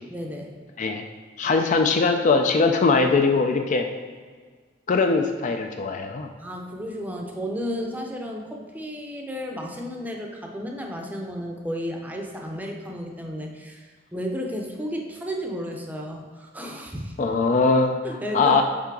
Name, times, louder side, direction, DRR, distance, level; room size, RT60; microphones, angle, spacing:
voice 1, 0.1-0.6 6.4-17.1 18.0-18.6, equal, 10° right, 1 dB, 0.6 m, -33 dB
voice 2, 1.4-3.9 4.9-6.3 17.2-18.0 18.3-18.6, left 4 dB, 40° left, 5 dB, 0.3 m, -21 dB
5.8 x 3.8 x 4.6 m, 1.5 s
head